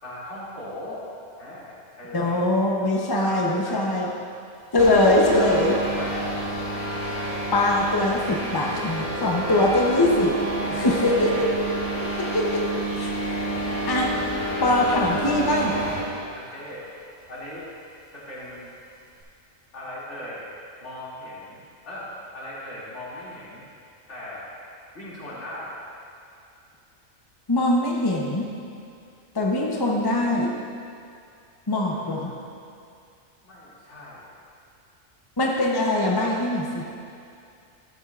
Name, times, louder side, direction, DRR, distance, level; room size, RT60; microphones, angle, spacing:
voice 1, 0.0-1.0 1.4-2.5 3.1-4.2 5.2-6.4 10.6-11.8 12.1-12.3 16.3-16.9 17.3-17.7 18.1-18.7 19.7-20.4 20.8-22.1 22.3-23.6 24.1-24.5 24.9-25.7 31.9-32.2 33.4-34.2, left 1 dB, 55° left, -9 dB, 2.8 m, -38 dB
voice 2, 2.1-4.1 4.7-5.7 7.5-10.4 10.7-11.4 12.3-12.6 13.0-13.1 13.4-13.6 13.9-14.1 14.6-15.7 27.5-28.5 29.3-30.5 31.7-32.3 35.4-36.8, left 1 dB, 25° left, -1 dB, 0.5 m, -22 dB
sound 1, 4.8-16.2, right 1 dB, 50° right, 1.6 m, -29 dB
12.5 x 9.2 x 2.4 m, 2.5 s
omnidirectional pair, 1.4 m